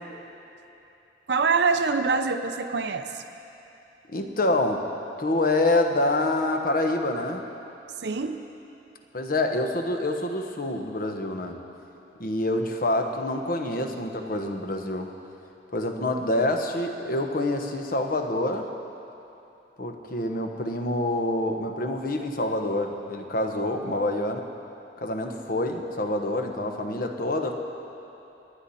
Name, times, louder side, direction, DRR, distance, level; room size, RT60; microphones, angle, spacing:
voice 1, 1.3-3.2 8.0-8.4, right 4 dB, 65° right, 7 dB, 0.7 m, -25 dB
voice 2, 4.1-4.9 5.2-7.5 9.1-11.6 12.2-15.1 15.7-18.6 19.8-24.5 25.0-27.5, left 2 dB, 50° left, 4 dB, 1.1 m, -26 dB
26.0 x 10.0 x 4.2 m, 2.9 s
head